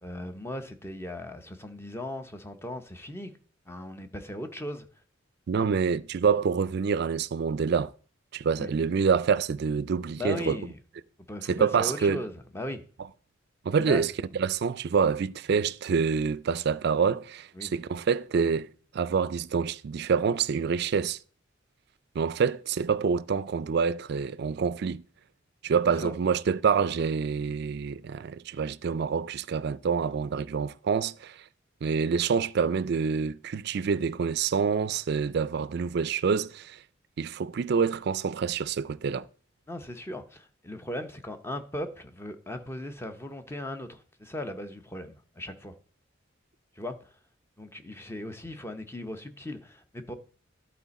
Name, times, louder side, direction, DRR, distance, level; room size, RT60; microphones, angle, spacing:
voice 1, 0.0-3.3 3.7-4.9 5.5-5.7 8.6-8.7 10.2-10.8 11.3-12.8 13.8-14.1 17.6-17.7 26.0-26.1 39.7-45.7 46.8-47.0 47.6-50.1, left 1 dB, 15° left, 0.7 m, -38 dB
voice 2, 5.5-7.9 8.3-10.6 11.5-12.2 13.6-14.1 14.4-21.2 22.1-25.0 25.6-31.4 31.8-36.8 37.2-39.3, right 6 dB, 55° right, 0.4 m, -27 dB
11.5 x 4.3 x 4.1 m
head